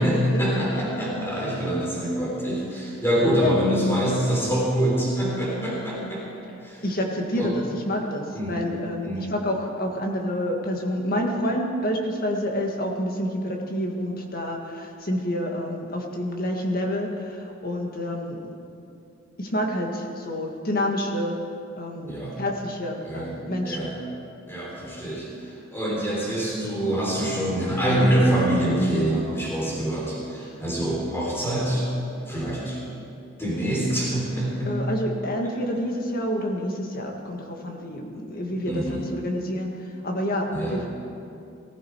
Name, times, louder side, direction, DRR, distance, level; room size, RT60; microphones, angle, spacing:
voice 1, 0.0-6.2 6.6-6.8 7.4-7.5 8.3-8.5 9.0-9.3 22.1-22.4 23.1-23.4 23.7-23.9 24.5-25.3 25.7-31.9 32.3-32.8 33.4-34.8 38.6-39.0 40.5-40.8, right 1 dB, 10° left, -4 dB, 3.5 m, -25 dB
voice 2, 6.8-18.5 19.4-21.4 21.8-23.9 33.6-33.9 34.6-40.9, equal, 45° left, 1 dB, 1.8 m, -28 dB
19.0 x 15.0 x 4.7 m, 2.6 s
head